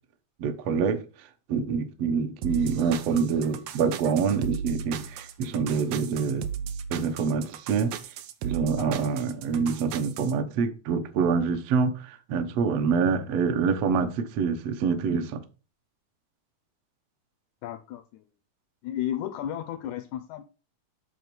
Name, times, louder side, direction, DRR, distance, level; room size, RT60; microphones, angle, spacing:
voice 1, 0.4-1.0 1.5-6.5 6.9-7.9 8.4-15.4, right 5 dB, 70° right, 1.6 m, -26 dB
sound 1, 2.4-10.3, right 7 dB, 85° right, 1.5 m, -36 dB
voice 2, 8.8-9.1 17.6-18.2 18.8-20.4, left 11 dB, 90° left, 1.7 m, -34 dB
7.9 x 4.3 x 6.8 m
omnidirectional pair, 4.0 m